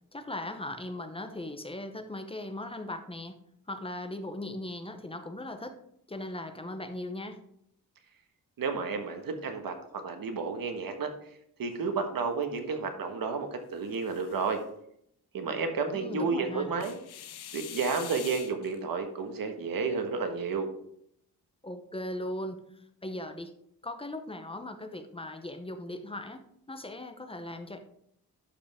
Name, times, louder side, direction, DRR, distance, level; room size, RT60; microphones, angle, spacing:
voice 1, 0.1-3.4 3.7-5.8 6.1-7.4 15.9-16.7 21.6-23.5 23.8-27.8, left 1 dB, 15° left, 8 dB, 0.7 m, -38 dB
voice 2, 8.6-11.1 11.6-14.6 15.3-17.0 17.5-20.7, right 4 dB, 65° right, 6 dB, 1.4 m, -31 dB
sound 1, 11.7-12.6 13.6-14.7 16.8-18.8, left 10 dB, 90° left, 0.8 m, -45 dB
11.5 x 5.1 x 3.6 m, 0.72 s
wide cardioid pair, 135°, 38 cm